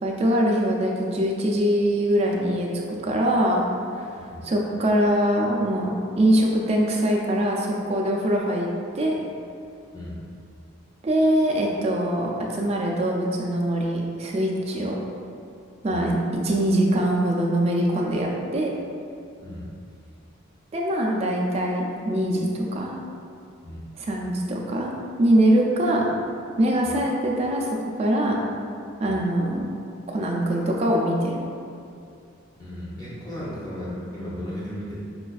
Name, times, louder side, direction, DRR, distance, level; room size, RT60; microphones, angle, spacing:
voice 1, 0.0-3.6 3.9-4.1 4.4-8.7 8.9-9.2 11.0-15.0 15.8-16.1 16.4-18.7 20.7-22.9 24.0-24.9 25.2-26.1 26.6-28.4 29.0-29.8 30.1-31.4, right 1 dB, 30° right, -1 dB, 0.3 m, -23 dB
voice 2, 32.6-35.0, left 1 dB, 20° left, -8 dB, 0.7 m, -35 dB
4.9 x 2.4 x 2.3 m, 2.5 s
head